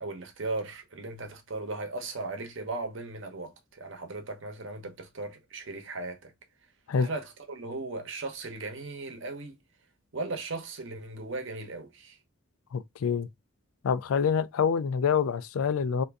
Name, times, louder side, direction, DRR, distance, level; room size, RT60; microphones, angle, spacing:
voice 1, 0.0-6.3 7.0-9.6 10.1-12.2, right 3 dB, 60° right, 0.8 m, -37 dB
voice 2, 12.7-13.3 13.8-16.0, left 6 dB, 80° left, 0.4 m, -26 dB
2.6 x 2.5 x 3.4 m
head